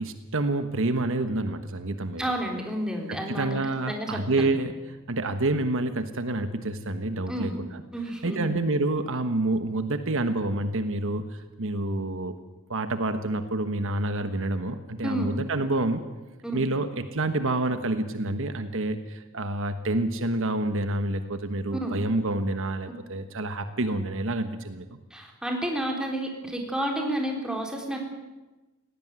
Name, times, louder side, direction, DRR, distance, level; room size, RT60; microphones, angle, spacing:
voice 1, 0.0-2.2 3.1-4.7 5.1-7.8 8.2-12.4 12.7-16.0 16.5-25.0, right 2 dB, 65° right, 9 dB, 1.3 m, -28 dB
voice 2, 2.2-4.5 7.3-7.6 7.9-8.5 15.0-15.3 16.4-16.6 21.7-21.9 25.1-28.0, right 1 dB, 5° right, 1 dB, 3.9 m, -30 dB
19.0 x 17.0 x 9.3 m, 1.1 s
head